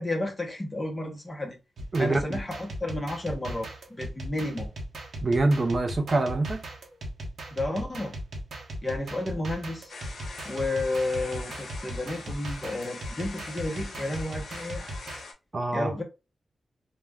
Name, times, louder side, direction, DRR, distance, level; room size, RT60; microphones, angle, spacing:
voice 1, 0.0-1.6 2.0-4.7 7.5-8.1 8.8-9.9 10.4-14.9 15.7-16.0, left 2 dB, 20° left, 0.7 m, -32 dB
sound 1, 1.8-15.2, right 1 dB, 75° right, 0.7 m, -38 dB
voice 2, 1.9-2.4 5.2-6.6 15.5-15.9, right 2 dB, 35° right, 0.4 m, -25 dB
sound 2, 9.9-15.3, left 3 dB, 80° left, 0.6 m, -43 dB
2.3 x 2.0 x 3.3 m
wide cardioid pair, 150°, 0 cm